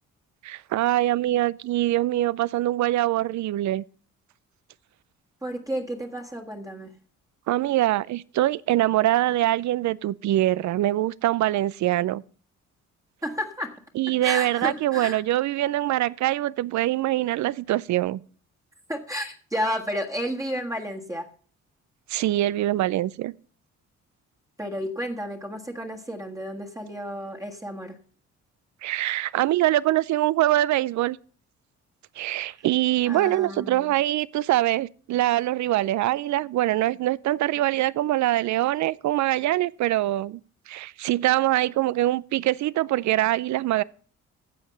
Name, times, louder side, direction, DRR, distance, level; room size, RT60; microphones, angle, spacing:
voice 1, 0.4-3.8 7.5-12.2 14.0-18.2 22.1-23.3 28.8-31.2 32.2-40.4 40.7-43.8, right 15 dB, 70° right, 0.5 m, -23 dB
voice 2, 5.4-6.9 13.2-13.8 14.2-15.2 18.9-21.3 24.6-28.0 33.1-33.9, equal, 10° right, 1.6 m, -32 dB
10.5 x 7.2 x 6.4 m
cardioid pair, 90°, 30 cm